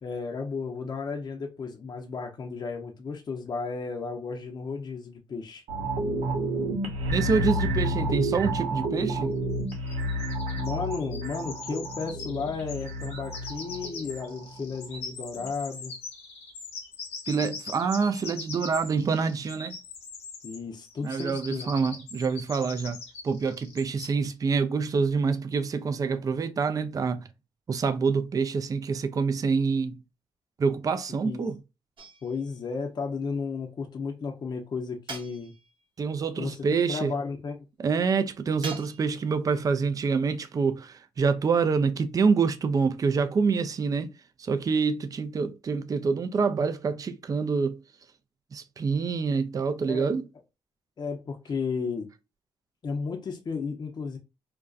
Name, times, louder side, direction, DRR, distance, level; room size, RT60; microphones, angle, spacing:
voice 1, 0.0-5.6 10.6-15.9 20.4-21.7 31.1-31.4 32.2-35.5 36.4-37.6 49.8-50.0 51.0-52.1 52.8-54.2, left 5 dB, 40° left, 0.6 m, -34 dB
sound 1, 5.7-15.0 15.4-15.5, right 1 dB, 80° right, 0.8 m, -30 dB
voice 2, 7.1-9.3 17.3-19.8 21.0-27.3 27.7-30.0 30.6-31.6 36.0-37.1 37.8-44.1 44.4-47.8 48.5-50.2, right 5 dB, 35° right, 0.4 m, -26 dB
sound 2, 9.5-20.6 20.8-24.1, left 4 dB, 85° left, 0.8 m, -42 dB
sound 3, 32.0-32.6 35.1-35.9 38.6-39.3, right 4 dB, 50° right, 0.7 m, -42 dB
2.5 x 2.2 x 2.3 m
cardioid pair, 70°, 11 cm